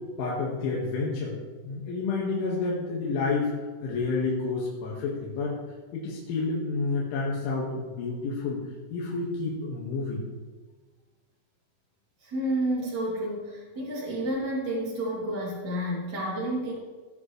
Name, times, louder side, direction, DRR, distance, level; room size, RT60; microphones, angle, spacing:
voice 1, 0.2-1.3 1.6-3.5 3.8-5.6 5.9-8.6 8.9-10.2, left 3 dB, 80° left, -5 dB, 4.3 m, -29 dB
voice 2, 12.2-16.7, right 1 dB, 25° right, -7 dB, 3.1 m, -30 dB
17.0 x 11.0 x 3.3 m, 1.4 s
omnidirectional pair, 5.4 m